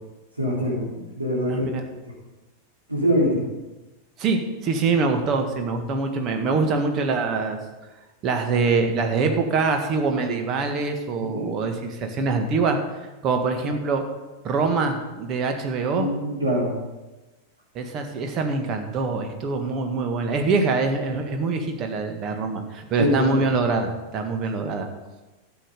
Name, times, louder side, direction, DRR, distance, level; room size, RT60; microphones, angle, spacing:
voice 1, 0.4-0.8 1.2-1.9 2.9-3.4 11.2-11.5 15.9-16.7 23.0-23.4, equal, 85° right, -7 dB, 3.9 m, -23 dB
voice 2, 1.5-1.8 4.2-7.6 8.2-12.8 13.2-14.0 14.4-16.1 17.7-24.9, right 4 dB, 35° right, 5 dB, 1.7 m, -24 dB
12.0 x 8.7 x 5.4 m, 1.1 s
figure-of-eight pair, 90°, 0 cm